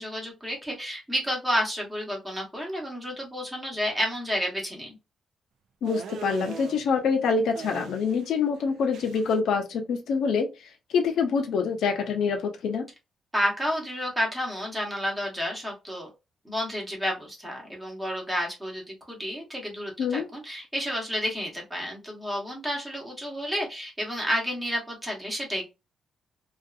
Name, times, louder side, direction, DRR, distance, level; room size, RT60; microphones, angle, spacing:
voice 1, 0.0-5.0 13.3-16.1 16.4-25.6, equal, 10° right, 1.0 m, -30 dB
voice 2, 5.8-12.9 20.0-20.3, left 5 dB, 80° left, 0.5 m, -26 dB
sound 1, 5.9-6.8 7.6-8.3 8.6-9.4, right 7 dB, 75° right, 0.4 m, -39 dB
2.6 x 2.4 x 2.4 m
wide cardioid pair, 170°, 0 cm